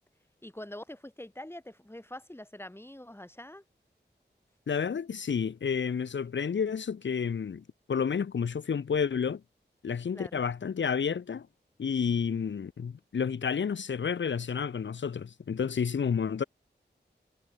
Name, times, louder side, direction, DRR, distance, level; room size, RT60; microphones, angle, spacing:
voice 1, 0.4-3.6 10.1-10.4, left 1 dB, 15° left, 3.4 m, -44 dB
voice 2, 4.7-9.4 9.8-11.5 11.8-16.4, left 6 dB, 85° left, 0.7 m, -30 dB
wide cardioid pair, 75°, 19 cm